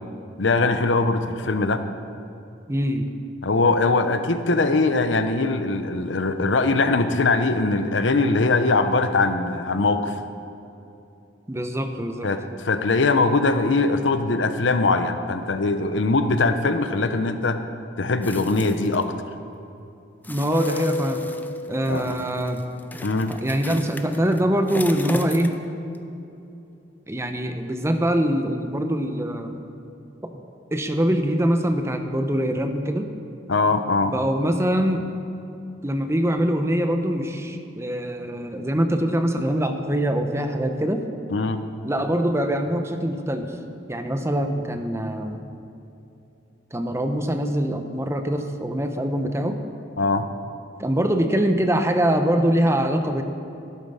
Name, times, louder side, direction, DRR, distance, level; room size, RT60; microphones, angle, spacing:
voice 1, 0.4-1.8 3.4-10.2 12.2-17.6 18.0-19.2 21.9-22.1 23.0-23.3 33.5-34.1 41.3-41.6 50.0-50.3, left 3 dB, 85° left, 9 dB, 0.8 m, -21 dB
voice 2, 2.7-3.1 11.5-12.3 20.3-21.2 21.7-22.6 23.3-25.5 27.1-29.6 30.2-30.3 30.7-33.1 34.0-35.0 35.8-41.0 41.8-43.5 43.9-45.4 46.7-49.6 50.8-53.2, equal, 15° right, 6 dB, 0.9 m, -23 dB
sound 1, 18.2-19.0 20.2-25.7 26.0-26.1, left 1 dB, 10° left, 0.6 m, -37 dB
Keyboard (musical), 20.5-23.0, left 4 dB, 65° left, 0.4 m, -32 dB
13.0 x 12.0 x 5.6 m, 2.8 s
head